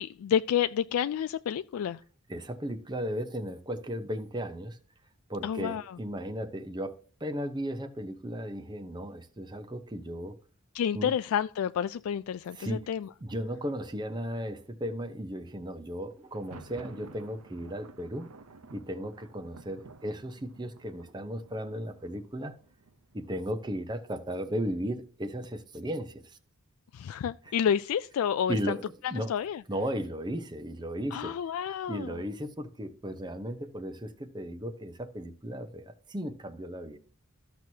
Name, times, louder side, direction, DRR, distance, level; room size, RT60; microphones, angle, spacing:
voice 1, 0.0-2.0 5.4-6.0 10.7-13.1 26.9-28.8 29.0-29.6 31.1-32.2, left 8 dB, 75° left, 0.3 m, -30 dB
voice 2, 2.3-4.8 5.3-10.4 10.9-11.1 12.5-12.9 13.2-18.3 18.7-22.5 23.1-26.4 28.5-28.8 29.1-29.3 29.7-31.4 31.9-37.0, equal, 20° right, 0.7 m, -35 dB
Thunder, 16.2-24.0, right 3 dB, 80° right, 0.7 m, -53 dB
14.0 x 6.1 x 2.8 m
head